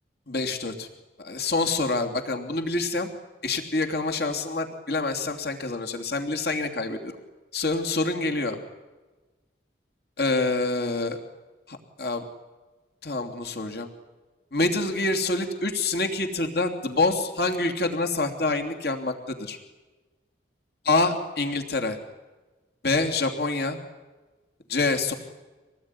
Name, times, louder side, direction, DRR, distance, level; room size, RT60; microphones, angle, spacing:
voice 1, 0.3-0.9 1.2-3.1 3.4-7.2 7.5-8.6 10.2-11.2 11.7-12.2 13.0-13.9 14.5-19.6 20.8-22.0 22.8-23.8 24.7-25.1, left 3 dB, 60° left, 5 dB, 3.1 m, -26 dB
26.0 x 19.0 x 9.9 m, 1.2 s
head